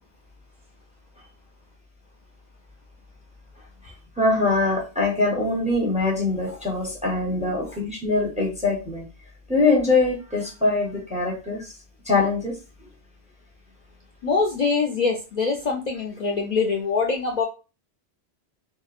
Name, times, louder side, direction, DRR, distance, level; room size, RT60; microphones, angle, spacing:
voice 1, 4.2-9.0 9.5-11.7 12.1-12.5, left 3 dB, 10° right, -1 dB, 0.6 m, -23 dB
voice 2, 14.2-17.4, left 4 dB, 55° left, 0 dB, 0.5 m, -24 dB
2.8 x 2.2 x 2.4 m, 0.31 s
omnidirectional pair, 1.1 m